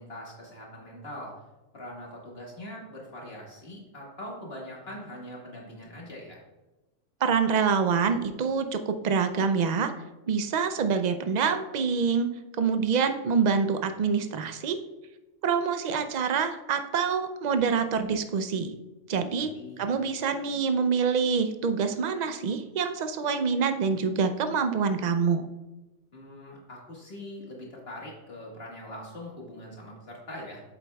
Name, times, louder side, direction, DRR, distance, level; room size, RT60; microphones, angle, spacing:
voice 1, 0.0-1.3 1.7-6.4 19.3-19.9 26.1-30.6, left 1 dB, 50° left, -3 dB, 1.8 m, -42 dB
voice 2, 7.2-9.9 10.3-12.3 12.6-14.8 15.4-18.7 19.1-19.5 19.8-25.4, right 6 dB, 75° right, 8 dB, 0.4 m, -26 dB
8.1 x 8.0 x 2.3 m, 1.1 s
omnidirectional pair, 1.4 m